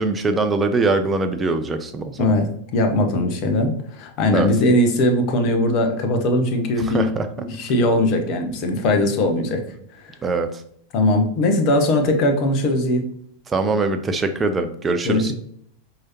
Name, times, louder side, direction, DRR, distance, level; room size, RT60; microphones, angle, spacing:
voice 1, 0.0-2.3 4.3-4.5 6.8-7.3 10.2-10.6 13.5-15.3, right 3 dB, 20° right, 7 dB, 0.4 m, -22 dB
voice 2, 2.2-7.1 7.4-9.6 10.0-10.2 10.9-13.1 15.0-15.3, left 1 dB, 45° left, 4 dB, 0.8 m, -20 dB
4.6 x 2.9 x 2.9 m, 0.67 s
figure-of-eight pair, 90°, 0 cm